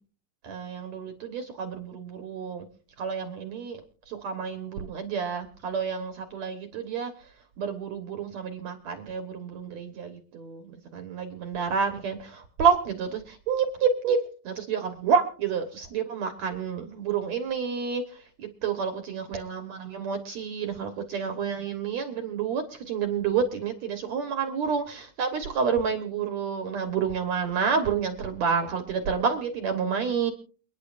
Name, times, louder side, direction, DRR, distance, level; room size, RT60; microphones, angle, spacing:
voice 1, 0.4-2.7 3.0-3.8 4.1-7.1 7.6-30.3, right 6 dB, 60° right, 6 dB, 2.3 m, -29 dB
29.0 x 10.0 x 2.5 m, 0.38 s
omnidirectional pair, 4.1 m